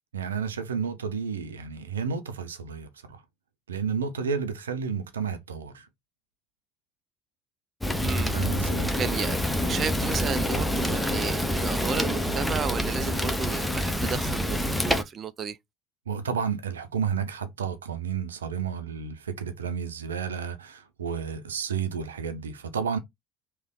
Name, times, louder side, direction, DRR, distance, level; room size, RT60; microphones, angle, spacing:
voice 1, 0.1-3.2 3.7-5.9 8.3-8.9 16.1-23.0, right 6 dB, 80° right, 0.6 m, -31 dB
Fire, 7.8-15.0, left 1 dB, 5° left, 0.9 m, -27 dB
voice 2, 8.0-8.3 8.8-15.6, right 7 dB, 40° right, 0.4 m, -33 dB
3.4 x 3.0 x 3.7 m
figure-of-eight pair, 65°, 0 cm